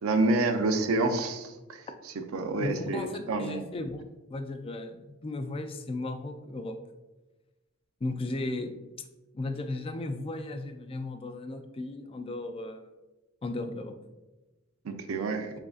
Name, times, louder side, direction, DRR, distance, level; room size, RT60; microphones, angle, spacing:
voice 1, 0.0-1.8 2.3-3.7 14.8-15.5, right 2 dB, 90° right, 7 dB, 0.5 m, -28 dB
voice 2, 2.6-4.0 4.3-6.8 8.0-8.8 9.3-12.8 13.4-13.9, left 2 dB, 25° left, 7 dB, 0.3 m, -35 dB
7.2 x 2.6 x 2.4 m, 1.1 s
head